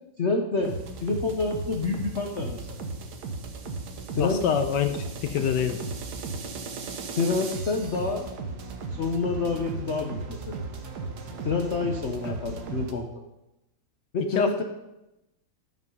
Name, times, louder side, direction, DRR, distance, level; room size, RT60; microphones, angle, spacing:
voice 1, 0.2-0.7 1.0-2.8 4.1-4.4 7.1-8.2 8.9-10.6 11.4-13.1 14.1-14.6, left 4 dB, 50° left, 1 dB, 0.8 m, -28 dB
sound 1, 0.6-12.9, right 3 dB, 60° right, 1.5 m, -36 dB
voice 2, 4.2-5.8 12.2-12.3 14.4-14.6, left 8 dB, 70° left, 8 dB, 1.1 m, -26 dB
13.5 x 6.0 x 5.3 m, 0.94 s
omnidirectional pair, 2.2 m